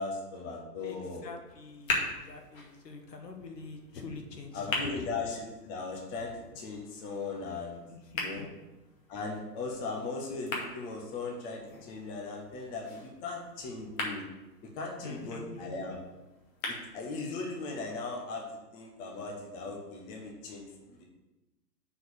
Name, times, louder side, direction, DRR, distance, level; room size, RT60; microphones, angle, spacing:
voice 1, 0.0-1.3 4.5-7.8 8.2-8.5 9.1-14.2 14.6-16.0 16.7-18.5 18.7-21.0, left 3 dB, 10° left, 0 dB, 0.5 m, -38 dB
voice 2, 1.2-5.0 7.9-8.5 15.0-15.7, left 4 dB, 75° left, 4 dB, 1.5 m, -45 dB
sound 1, 1.4-17.4, left 3 dB, 55° left, 2.1 m, -41 dB
6.6 x 4.4 x 6.7 m, 1.0 s
figure-of-eight pair, 115°, 49 cm